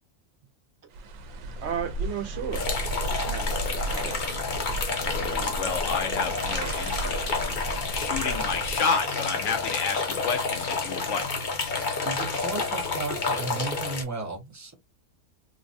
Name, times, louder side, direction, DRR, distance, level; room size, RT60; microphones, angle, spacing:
sound 1, 0.9-8.8, right 1 dB, 85° right, 1.0 m, -34 dB
voice 1, 1.6-3.5 3.9-4.2, right 8 dB, 65° right, 0.9 m, -34 dB
sound 2, 2.5-14.0, left 4 dB, 45° left, 0.7 m, -29 dB
voice 2, 5.0-7.6 7.9-11.3, left 5 dB, 70° left, 1.1 m, -30 dB
voice 3, 12.0-14.7, right 3 dB, 25° right, 0.4 m, -34 dB
3.2 x 2.1 x 2.5 m
omnidirectional pair, 1.3 m